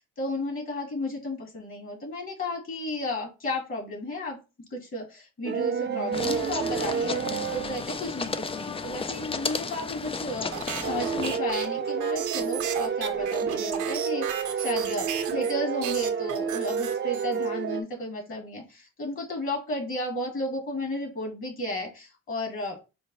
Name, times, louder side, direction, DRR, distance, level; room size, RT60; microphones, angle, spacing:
voice 1, 0.2-4.4 4.7-22.8, left 1 dB, 45° left, 1 dB, 2.3 m, -33 dB
sound 1, 5.4-7.9 10.8-17.8, right 6 dB, 40° right, 0.7 m, -29 dB
sound 2, 6.1-11.4, left 4 dB, 20° left, 0.4 m, -33 dB
sound 3, 10.5-15.5 15.8-17.5, right 9 dB, 75° right, 0.8 m, -35 dB
5.0 x 2.2 x 4.1 m, 0.29 s
cardioid pair, 90°, 30 cm